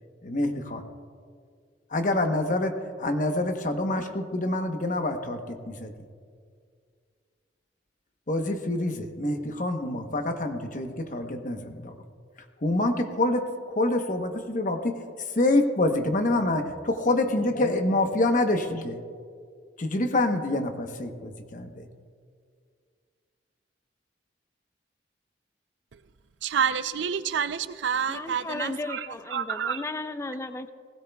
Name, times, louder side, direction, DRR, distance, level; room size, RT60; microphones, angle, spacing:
voice 1, 0.2-0.8 1.9-5.9 8.3-12.0 12.6-19.0 19.8-21.9, left 2 dB, 45° left, 5 dB, 1.0 m, -26 dB
voice 2, 26.4-29.0 29.3-29.8, right 7 dB, 85° right, 13 dB, 0.5 m, -28 dB
voice 3, 28.1-30.7, left 2 dB, 15° left, 10 dB, 0.4 m, -35 dB
18.5 x 16.5 x 2.3 m, 2.1 s
head